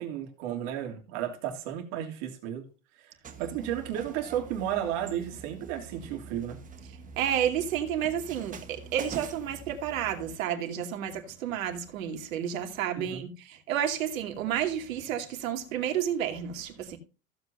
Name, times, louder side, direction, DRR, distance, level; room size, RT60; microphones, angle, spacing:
voice 1, 0.0-2.6 3.0-3.1 3.4-6.6 12.9-13.3, right 10 dB, 55° right, 3.1 m, -33 dB
sound 1, 3.2-10.4, right 5 dB, 20° right, 1.4 m, -45 dB
voice 2, 7.2-17.0, right 9 dB, 75° right, 2.6 m, -31 dB
15.5 x 8.0 x 2.7 m
supercardioid pair, 130°, 41 cm